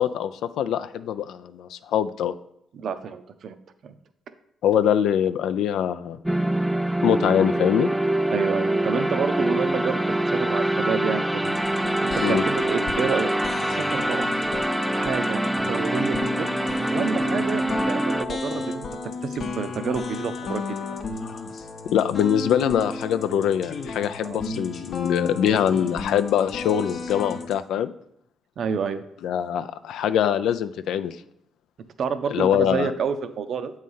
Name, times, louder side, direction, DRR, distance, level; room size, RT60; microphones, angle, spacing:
voice 1, 0.0-2.3 4.6-6.2 7.0-7.9 12.2-12.4 21.9-27.9 29.2-31.2 32.3-32.9, left 9 dB, 80° left, 12 dB, 0.3 m, -23 dB
voice 2, 2.7-3.6 3.8-4.0 8.3-11.5 12.0-13.3 13.6-14.3 14.9-16.6 16.9-18.9 19.2-20.8 24.2-24.4 28.6-29.0 32.0-33.7, right 6 dB, 60° right, 10 dB, 0.6 m, -29 dB
sound 1, 6.2-18.3, right 1 dB, 5° right, 0.3 m, -24 dB
sound 2, 11.4-27.6, left 3 dB, 55° left, 0.7 m, -33 dB
7.5 x 3.2 x 5.4 m, 0.75 s
cardioid pair, 90°, 0 cm